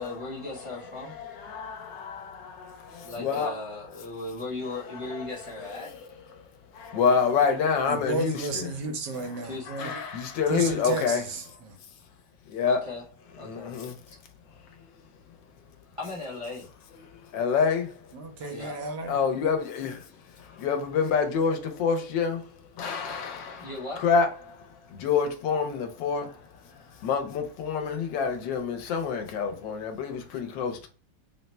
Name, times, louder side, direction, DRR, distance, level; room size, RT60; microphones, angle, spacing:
voice 1, 0.0-1.1 3.0-5.9 9.4-9.9 12.7-13.0 13.4-13.7 16.0-16.7 18.5-18.8 23.5-24.0, left 2 dB, 35° right, 0.5 m, -37 dB
voice 2, 1.0-3.5 5.0-5.3 5.6-6.4 6.7-8.7 9.7-11.2 12.5-12.8 13.4-14.0 17.0-18.0 19.1-20.1 20.4-22.5 22.8-23.7 24.0-30.9, left 6 dB, 85° left, 1.4 m, -28 dB
voice 3, 7.9-10.0 10.5-11.8 18.1-19.2, right 3 dB, 75° right, 1.3 m, -33 dB
3.7 x 2.1 x 4.1 m
omnidirectional pair, 1.9 m